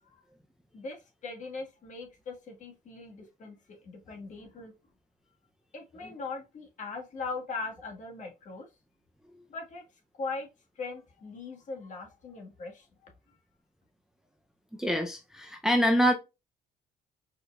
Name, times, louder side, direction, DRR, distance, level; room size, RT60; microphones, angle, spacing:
voice 1, 0.7-3.6 3.8-4.7 5.7-8.7 9.5-9.8 10.2-10.5 10.8-13.1, left 4 dB, 45° left, 1.7 m, -40 dB
voice 2, 14.8-16.1, equal, 5° right, 0.5 m, -25 dB
5.0 x 4.4 x 2.4 m
cardioid pair, 110°, 17 cm